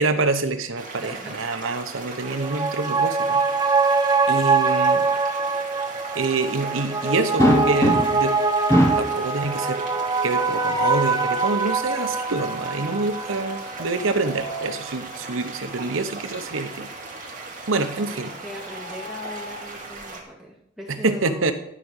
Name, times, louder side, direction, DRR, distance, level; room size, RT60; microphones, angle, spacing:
voice 1, 0.0-3.4 3.8-3.9 4.3-5.1 6.1-8.4 8.7-9.8 10.2-16.9 17.7-18.3 20.9-21.5, right 3 dB, 80° right, 8 dB, 1.0 m, -26 dB
sound 1, 0.8-20.2, right 3 dB, 40° right, 2.3 m, -38 dB
voice 2, 1.0-1.4 18.0-21.5, equal, ahead, -2 dB, 2.1 m, -39 dB
sound 2, 2.3-15.1 15.5-15.6, right 4 dB, 20° right, 0.8 m, -24 dB
sound 3, 7.4-8.3 8.7-9.2 10.4-11.2 13.8-14.8 16.3-16.4 16.8-16.9 18.4-19.7, equal, 15° left, 1.1 m, -24 dB
12.5 x 5.1 x 6.4 m, 0.74 s
head